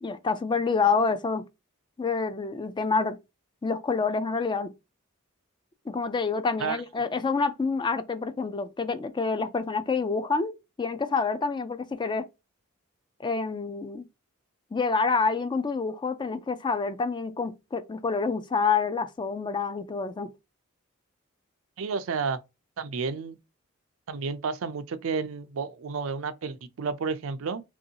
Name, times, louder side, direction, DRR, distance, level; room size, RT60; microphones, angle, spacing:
voice 1, 0.0-1.5 2.0-3.2 3.6-4.7 5.9-10.5 10.8-12.3 13.2-14.0 14.7-20.3, left 4 dB, 20° left, 0.3 m, -27 dB
voice 2, 21.8-22.4 22.8-23.4 24.1-27.6, right 5 dB, 70° right, 0.4 m, -31 dB
3.0 x 2.7 x 2.7 m
head